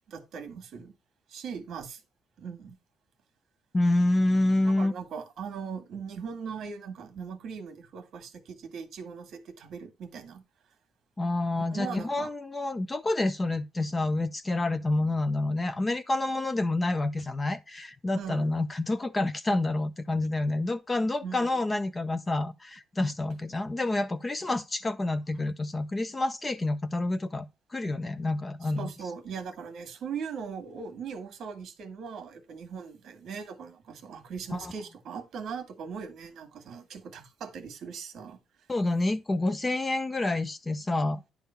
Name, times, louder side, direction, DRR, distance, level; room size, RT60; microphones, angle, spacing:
voice 1, 0.1-0.9 1.3-2.0 2.4-2.8 4.7-10.4 11.6-12.3 18.2-18.5 21.2-21.6 28.6-38.4, right 6 dB, 55° right, 1.6 m, -39 dB
voice 2, 3.7-4.9 11.2-27.5 27.7-28.9 34.5-34.7 38.7-41.2, left 2 dB, 15° left, 0.4 m, -28 dB
10.5 x 3.6 x 5.6 m
cardioid pair, 175°, 0 cm